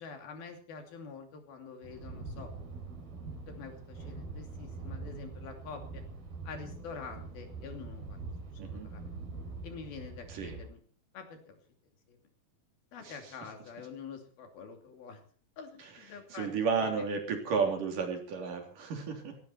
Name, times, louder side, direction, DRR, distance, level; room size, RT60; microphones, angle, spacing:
voice 1, 0.0-2.5 3.5-6.0 6.4-8.2 8.7-9.1 9.6-10.8 11.1-11.6 12.1-12.2 12.9-15.2 15.6-17.1, left 5 dB, 75° left, 5 dB, 4.7 m, -46 dB
sound 1, 1.8-10.7, right 3 dB, 80° right, 5.5 m, -44 dB
voice 2, 16.3-19.4, right 5 dB, 60° right, 3 dB, 4.8 m, -32 dB
17.5 x 17.0 x 4.4 m, 0.44 s
omnidirectional pair, 4.3 m